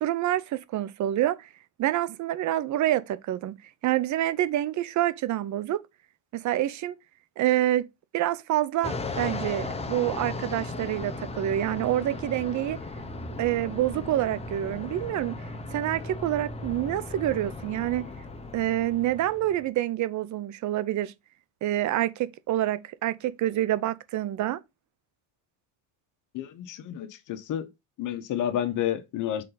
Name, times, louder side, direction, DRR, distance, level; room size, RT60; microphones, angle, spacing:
voice 1, 0.0-1.5 1.8-3.6 3.8-5.8 6.3-7.0 7.4-7.9 8.1-12.8 13.4-15.3 15.7-18.1 18.5-21.1 21.6-24.6, right 13 dB, 50° right, 0.7 m, -27 dB
Fixed-wing aircraft airplane, 8.8-19.7, left 2 dB, 15° left, 1.0 m, -36 dB
voice 2, 26.3-27.6 28.0-29.4, left 10 dB, 55° left, 1.1 m, -30 dB
6.6 x 4.0 x 3.9 m
cardioid pair, 105°, 38 cm